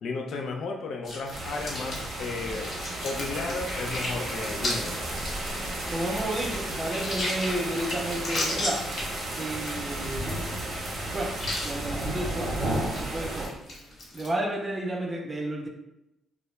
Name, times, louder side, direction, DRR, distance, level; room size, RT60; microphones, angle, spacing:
voice 1, 0.0-2.7 3.0-5.0, left 3 dB, 65° left, 3 dB, 0.3 m, -33 dB
sound 1, 1.0-14.3, left 1 dB, 50° left, 0.7 m, -36 dB
sound 2, 1.3-13.5, right 1 dB, 60° right, 0.7 m, -33 dB
voice 2, 5.9-8.9 9.3-10.6 11.1-11.4 11.6-13.6 14.1-15.7, right 1 dB, 25° right, 2 dB, 0.4 m, -32 dB
2.2 x 2.0 x 3.0 m, 0.88 s
cardioid pair, 90°, 0 cm